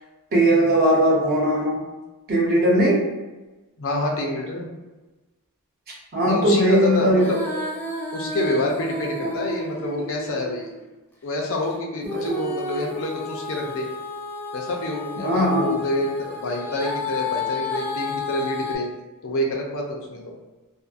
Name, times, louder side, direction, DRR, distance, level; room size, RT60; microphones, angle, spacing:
voice 1, 0.3-1.8 2.3-3.0 6.1-7.3 9.2-9.3 12.2-12.3 15.2-15.8, right 1 dB, 45° right, -4 dB, 0.8 m, -19 dB
voice 2, 3.8-4.7 6.2-7.4 8.1-10.7 11.2-13.9 14.5-18.9 19.2-20.3, left 1 dB, 65° left, 0 dB, 0.5 m, -27 dB
Female singing, 7.1-10.8 12.0-18.8, left 2 dB, 10° left, 0.4 m, -32 dB
2.6 x 2.4 x 2.4 m, 1.1 s
head